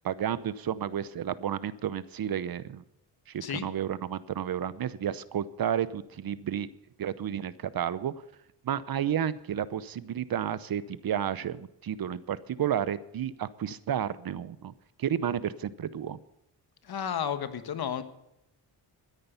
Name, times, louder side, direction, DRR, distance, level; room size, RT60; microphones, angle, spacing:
voice 1, 0.0-2.8 3.3-6.7 7.0-8.1 8.6-14.7 15.0-16.2, right 9 dB, 55° right, 17 dB, 0.8 m, -31 dB
voice 2, 16.8-18.0, left 8 dB, 60° left, 11 dB, 1.4 m, -32 dB
13.5 x 10.0 x 6.9 m, 0.84 s
cardioid pair, 95°, 43 cm